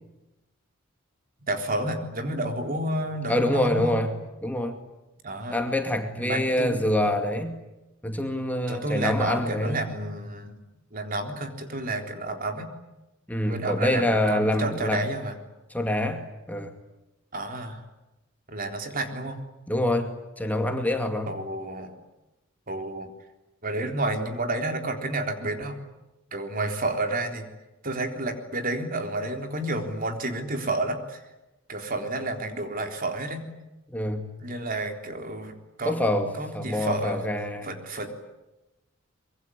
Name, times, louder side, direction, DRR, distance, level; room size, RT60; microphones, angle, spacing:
voice 1, 1.5-4.0 5.2-5.6 6.2-6.9 8.7-10.5 10.9-12.7 13.5-15.4 17.3-17.8 18.5-19.4 21.3-21.9 22.7-23.1 23.6-25.8 26.3-27.5 27.8-31.2 31.7-33.5 34.4-36.0 36.4-37.2 37.6-38.1, right 2 dB, 45° right, 5 dB, 3.8 m, -30 dB
voice 2, 3.3-4.1 4.4-4.8 5.5-7.6 8.0-9.8 13.3-15.1 15.7-16.7 19.7-21.3 33.9-34.3 35.8-37.7, left 1 dB, 10° left, 4 dB, 2.3 m, -26 dB
24.5 x 23.5 x 9.9 m, 0.99 s
head